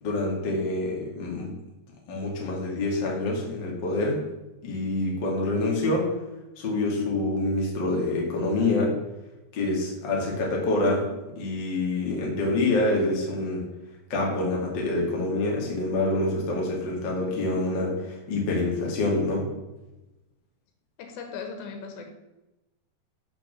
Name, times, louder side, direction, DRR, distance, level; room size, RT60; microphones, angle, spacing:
voice 1, 0.0-1.5 2.1-4.2 4.6-6.1 6.6-8.9 9.5-11.0 11.4-13.7 14.1-19.4, left 2 dB, 35° left, -2 dB, 2.0 m, -26 dB
voice 2, 21.0-22.1, left 5 dB, 85° left, 4 dB, 3.6 m, -37 dB
6.9 x 6.4 x 7.2 m, 1.0 s
omnidirectional pair, 4.9 m